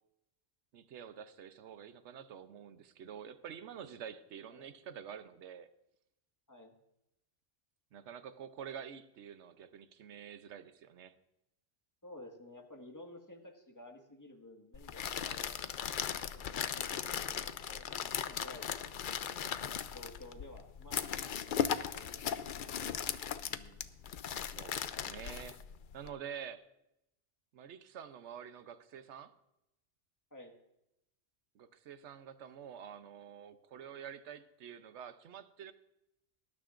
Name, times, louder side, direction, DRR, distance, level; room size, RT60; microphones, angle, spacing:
voice 1, 0.7-5.7 7.9-11.1 24.3-25.6 25.9-26.7 27.5-29.3 31.5-35.7, right 8 dB, 85° right, 11 dB, 1.0 m, -48 dB
voice 2, 12.0-15.6 16.3-18.7 19.9-22.2 23.4-24.1 30.3-30.5, left 1 dB, 15° left, 2 dB, 1.6 m, -53 dB
sound 1, 14.7-26.1, left 8 dB, 55° left, 0.6 m, -38 dB
19.5 x 12.0 x 2.5 m, 0.85 s
omnidirectional pair, 1.1 m